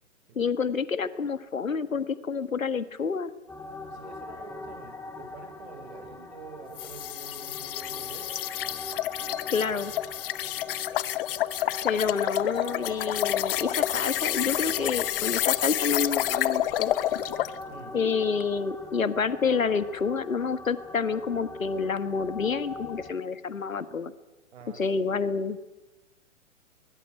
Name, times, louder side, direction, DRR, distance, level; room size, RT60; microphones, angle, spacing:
voice 1, 0.3-3.3 9.5-9.9 11.8-16.9 17.9-24.1 24.8-25.6, left 5 dB, 80° left, 14 dB, 1.7 m, -28 dB
sound 1, 3.5-23.1, left 2 dB, 5° left, 2.3 m, -42 dB
voice 2, 3.9-8.3 17.7-18.1 24.5-25.2, right 6 dB, 55° right, 6 dB, 6.7 m, -47 dB
sound 2, 6.8-17.6, left 14 dB, 45° left, 1.0 m, -29 dB
21.5 x 21.0 x 9.9 m, 1.1 s
figure-of-eight pair, 115°, 40 cm